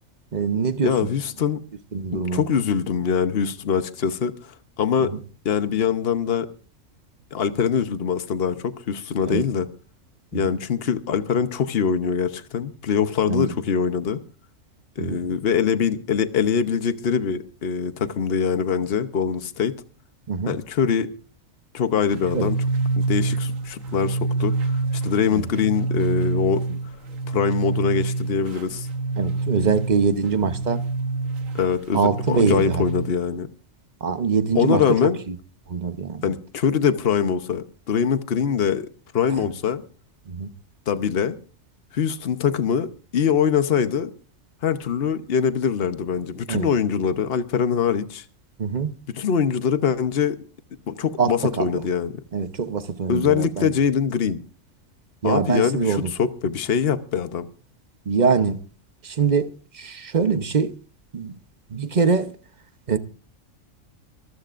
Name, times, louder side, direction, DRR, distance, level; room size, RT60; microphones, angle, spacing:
voice 1, 0.3-1.0 1.9-2.4 5.0-5.1 9.2-9.4 10.3-10.5 13.3-13.5 15.0-15.2 20.3-20.5 22.3-22.5 25.3-25.5 29.2-30.8 31.9-32.8 34.0-35.0 35.3-35.4 35.7-36.3 39.4-39.5 40.3-40.5 46.5-46.7 48.6-48.9 51.2-51.8 52.3-53.7 55.2-56.1 58.1-58.6 59.0-60.7 61.1-61.3 61.7-62.3 62.9-63.0, right 5 dB, 35° right, 1.0 m, -23 dB
voice 2, 0.8-1.6 2.3-5.1 5.4-6.5 7.3-9.7 10.3-14.2 15.0-19.7 20.4-21.1 21.7-22.6 23.0-26.6 27.3-28.9 31.5-33.5 34.5-35.2 36.2-38.9 39.1-39.8 40.9-41.4 41.9-44.1 44.6-48.2 49.1-50.4 50.9-52.2 53.1-54.4 55.2-57.5, left 7 dB, 50° left, 1.1 m, -23 dB
sound 1, 22.1-33.1, right 3 dB, 85° right, 1.5 m, -27 dB
24.5 x 14.5 x 2.5 m
omnidirectional pair, 1.3 m